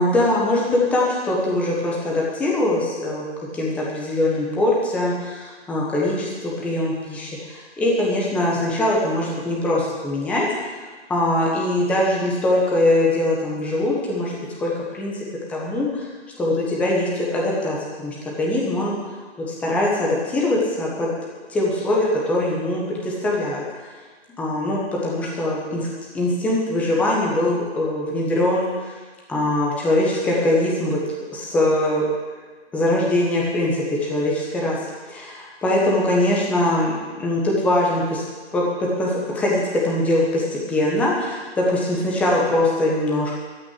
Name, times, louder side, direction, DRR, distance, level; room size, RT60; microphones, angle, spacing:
voice 1, 0.0-3.2 3.5-10.7 11.1-14.3 14.6-15.2 15.5-16.1 16.4-18.9 19.5-21.1 21.5-23.9 24.4-25.9 26.1-28.9 29.3-31.0 31.3-32.0 32.7-34.8 35.1-38.2 38.5-43.4, left 1 dB, 5° left, -4 dB, 1.2 m, -22 dB
14.5 x 6.3 x 9.9 m, 1.4 s
hypercardioid pair, 160°, 34 cm